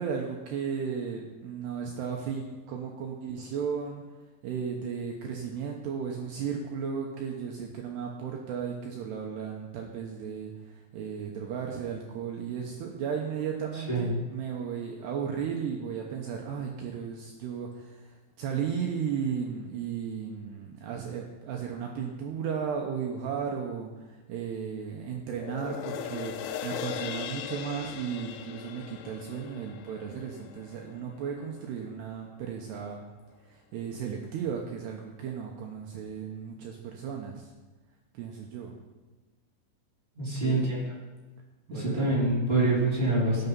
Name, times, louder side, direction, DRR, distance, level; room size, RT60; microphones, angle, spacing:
voice 1, 0.0-4.0 4.4-26.3 26.6-33.1 33.5-37.4 38.1-38.8 40.4-40.7 41.7-42.1, right 7 dB, 75° right, 0 dB, 2.6 m, -35 dB
voice 2, 13.7-14.1 40.1-40.9 41.7-43.5, right 2 dB, 15° right, -8 dB, 3.4 m, -26 dB
sound 1, 25.3-31.9 32.4-32.5, left 9 dB, 85° left, 2.9 m, -39 dB
17.0 x 6.9 x 5.4 m, 1.2 s
omnidirectional pair, 5.6 m